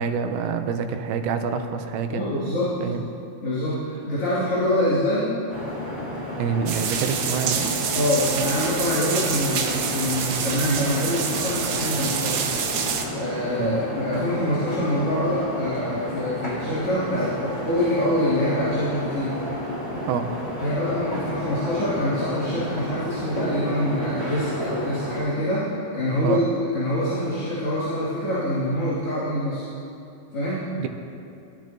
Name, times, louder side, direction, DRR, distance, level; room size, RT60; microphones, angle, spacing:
voice 1, 0.0-2.2 2.8-3.1 6.4-7.8 13.6-13.8 20.1-20.3 26.2-26.4 30.8-30.9, right 6 dB, 90° right, 6 dB, 3.0 m, -27 dB
voice 2, 2.1-2.8 3.4-5.3 7.9-12.5 13.1-19.3 20.6-29.6 30.3-30.7, left 1 dB, 35° left, -12 dB, 3.3 m, -25 dB
sound 1, 5.5-25.2, left 1 dB, 10° left, 3.3 m, -31 dB
sound 2, 6.7-13.0, right 7 dB, 70° right, 2.2 m, -27 dB
22.5 x 13.5 x 3.0 m, 2.6 s
omnidirectional pair, 5.0 m